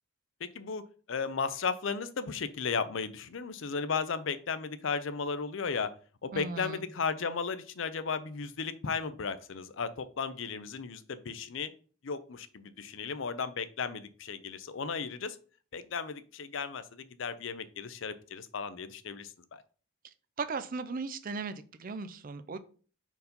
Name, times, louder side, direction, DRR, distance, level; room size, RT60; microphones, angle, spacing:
voice 1, 0.4-5.9 6.2-11.7 12.0-15.4 15.7-19.6, left 5 dB, 60° left, 13 dB, 0.5 m, -35 dB
voice 2, 6.3-6.9 20.0-22.6, right 4 dB, 40° right, 12 dB, 0.4 m, -37 dB
4.6 x 4.0 x 5.2 m, 0.41 s
head